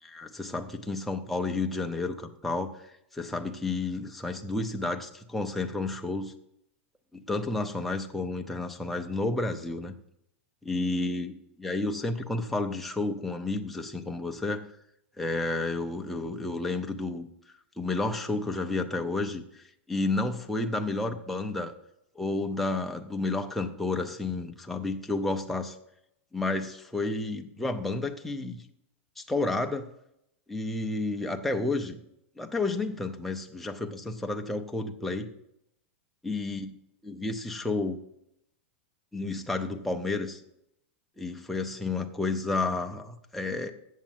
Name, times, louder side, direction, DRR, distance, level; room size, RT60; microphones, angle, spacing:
voice 1, 0.0-2.7 3.1-6.3 7.3-9.9 10.7-14.7 15.2-17.3 17.8-19.4 19.9-21.7 22.2-25.8 26.3-28.6 29.2-29.9 30.5-32.0 32.4-35.3 36.2-36.8 37.0-38.0 39.1-40.4 41.2-43.7, left 2 dB, ahead, 3 dB, 0.5 m, -31 dB
7.7 x 7.3 x 7.4 m, 0.79 s
supercardioid pair, 175°, 7 cm